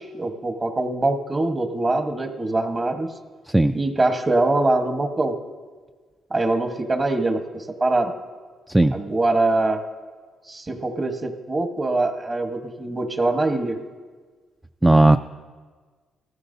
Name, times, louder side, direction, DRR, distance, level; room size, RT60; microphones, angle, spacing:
voice 1, 0.0-3.1 3.7-5.3 6.3-8.1 8.9-9.8 10.5-13.8, right 2 dB, 30° right, 6 dB, 1.2 m, -23 dB
voice 2, 14.8-15.2, right 2 dB, 10° right, 8 dB, 0.3 m, -14 dB
18.0 x 14.5 x 2.7 m, 1.5 s
cardioid pair, 90°, 0 cm